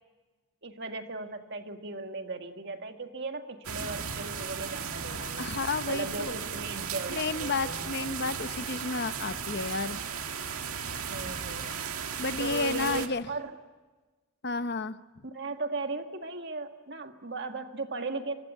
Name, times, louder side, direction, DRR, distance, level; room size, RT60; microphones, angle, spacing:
voice 1, 0.6-5.5 5.9-8.0 11.1-11.7 12.4-13.5 15.2-18.4, right 3 dB, 50° right, 6 dB, 1.8 m, -37 dB
sound 1, 3.6-13.1, right 6 dB, 85° right, 1.9 m, -36 dB
voice 2, 5.2-6.4 7.1-10.0 12.2-13.3 14.4-15.0, left 4 dB, 50° left, 12 dB, 0.8 m, -32 dB
26.5 x 24.5 x 8.3 m, 1.3 s
head